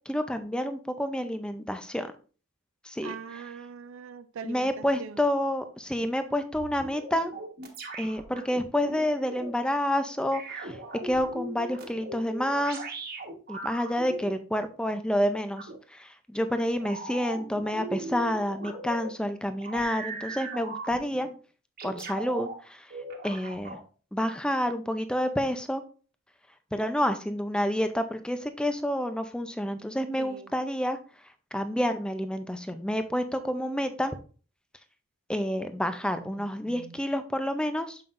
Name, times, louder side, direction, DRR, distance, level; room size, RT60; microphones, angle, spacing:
voice 1, 0.1-2.1 2.8-3.1 4.4-7.3 8.0-10.8 11.0-12.8 13.5-21.3 21.8-22.9 23.2-23.8 24.1-25.8 26.7-31.0 31.5-34.1 35.3-38.0, equal, 5° left, 9 dB, 0.5 m, -29 dB
voice 2, 3.0-5.2 30.2-30.5 36.2-37.0, right 6 dB, 65° right, 12 dB, 0.3 m, -42 dB
sound 1, 6.5-9.5 10.3-14.3 15.6-15.7 16.8-19.1 19.6-21.3 21.8-22.5 22.9-23.8, right 2 dB, 45° right, 1.3 m, -39 dB
6.9 x 5.7 x 2.5 m, 0.38 s
head